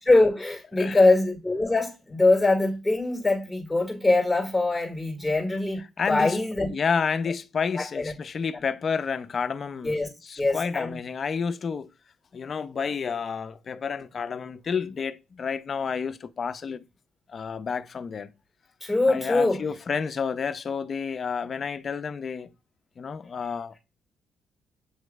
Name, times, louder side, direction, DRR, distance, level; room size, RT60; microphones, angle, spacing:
voice 1, 0.0-5.8 6.1-6.7 7.7-8.1 9.8-10.1 10.4-11.0 18.8-19.6 23.4-23.5, left 2 dB, 5° left, 1.9 m, -23 dB
voice 2, 6.0-6.4 6.7-10.0 10.3-11.9 12.3-16.8 17.3-18.3 19.1-22.5 23.0-23.8, left 6 dB, 45° left, 0.4 m, -30 dB
7.8 x 3.1 x 2.2 m
cardioid pair, 90°, 0 cm